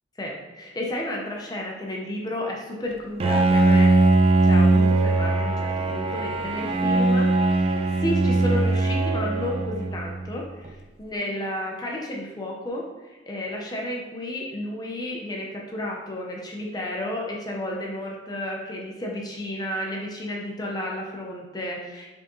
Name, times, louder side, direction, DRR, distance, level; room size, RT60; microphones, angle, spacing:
voice 1, 0.2-4.0 4.4-7.5 7.9-22.1, left 1 dB, 20° left, -1 dB, 0.5 m, -32 dB
Bowed string instrument, 3.2-10.3, right 2 dB, 30° right, 0.3 m, -20 dB
4.6 x 3.6 x 3.0 m, 1.2 s
head